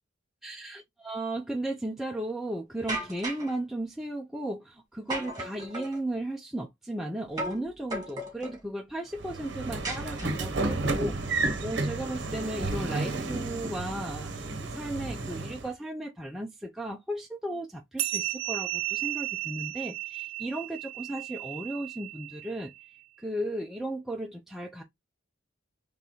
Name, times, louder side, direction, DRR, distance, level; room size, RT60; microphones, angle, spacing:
voice 1, 0.4-22.7 23.2-24.8, right 1 dB, ahead, 0.4 m, -35 dB
sound 1, 2.9-3.5 5.1-6.0 7.4-7.6 7.9-8.6 9.8-10.6, right 1 dB, 20° right, 1.8 m, -35 dB
Train / Sliding door, 9.2-15.7, right 2 dB, 60° right, 0.8 m, -32 dB
sound 2, 18.0-22.9, right 16 dB, 90° right, 0.4 m, -34 dB
3.9 x 3.2 x 2.9 m
head